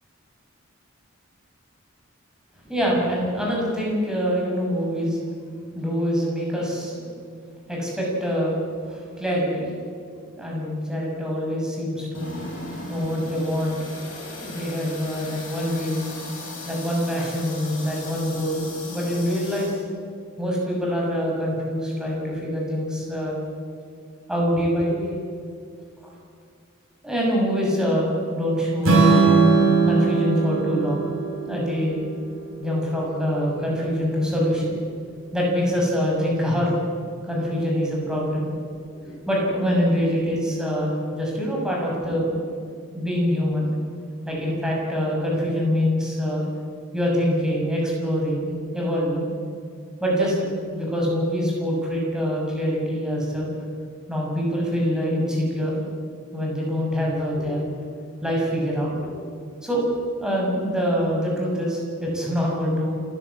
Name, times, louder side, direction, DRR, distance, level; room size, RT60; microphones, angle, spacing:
voice 1, 2.7-5.2 5.7-6.9 7.7-8.6 8.9-9.7 10.4-12.3 12.9-13.8 14.4-16.0 16.6-18.6 18.9-19.7 20.4-23.4 24.3-25.2 27.0-29.4 29.8-31.1 31.5-32.0 32.6-34.8 35.3-36.8 37.2-38.5 38.9-42.4 42.9-43.7 44.3-46.5 46.9-49.3 50.0-50.5 50.7-53.5 54.1-55.8 56.3-57.6 58.2-59.1 59.6-59.8 60.2-63.0, equal, 5° right, -3 dB, 6.4 m, -25 dB
sound 1, 12.1-19.8, left 2 dB, 70° left, 7.5 m, -37 dB
Strum, 28.8-33.0, right 4 dB, 80° right, 6.4 m, -20 dB
28.5 x 12.0 x 8.5 m, 2.3 s
head